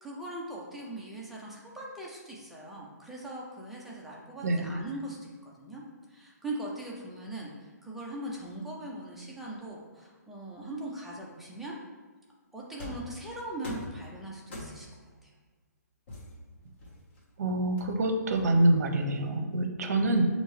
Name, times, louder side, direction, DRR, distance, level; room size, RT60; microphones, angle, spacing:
voice 1, 0.0-5.8 6.1-11.8 12.5-14.9 15.2-15.3, right 1 dB, ahead, -4 dB, 0.3 m, -40 dB
voice 2, 4.4-4.8 17.4-20.3, right 1 dB, 60° right, 6 dB, 0.6 m, -26 dB
sound 1, 12.8-13.1 13.6-14.0 14.5-15.0 16.1-17.2 17.8-18.8, left 1 dB, 40° left, 1.1 m, -42 dB
6.2 x 2.7 x 3.1 m, 1.4 s
hypercardioid pair, 165°, 10 cm